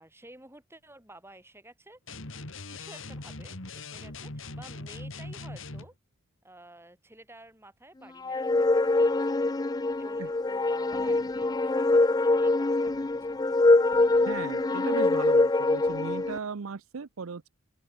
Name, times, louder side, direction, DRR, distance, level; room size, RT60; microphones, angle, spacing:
voice 1, 0.0-2.0 2.7-5.9 6.4-9.4 10.0-13.4, right 1 dB, 10° right, 4.9 m, -52 dB
sound 1, 2.1-5.9, left 2 dB, 60° left, 2.9 m, -41 dB
sound 2, 8.2-16.4, left 2 dB, 15° left, 0.3 m, -24 dB
voice 2, 14.3-17.5, right 5 dB, 70° right, 0.6 m, -37 dB
open air
head